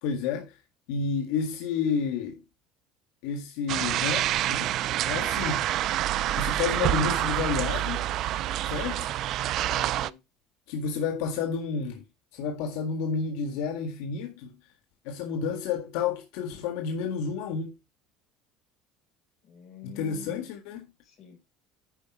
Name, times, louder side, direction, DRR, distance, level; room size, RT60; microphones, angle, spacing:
voice 1, 0.0-0.6 0.9-2.4 3.2-4.8 5.0-5.7 6.3-8.0 8.6-9.1 10.7-12.0 12.3-14.5 15.0-17.8 19.8-20.8, left 6 dB, 80° left, 1.7 m, -30 dB
sound 1, 3.7-10.1, right 13 dB, 50° right, 0.4 m, -27 dB
Telephone, 3.7-4.8 5.7-6.9 7.7-8.9, right 6 dB, 70° right, 3.1 m, -49 dB
voice 2, 9.6-10.2 19.4-20.5 21.0-21.4, left 9 dB, 40° left, 4.4 m, -46 dB
10.5 x 4.9 x 4.7 m
cardioid pair, 150°, 0 cm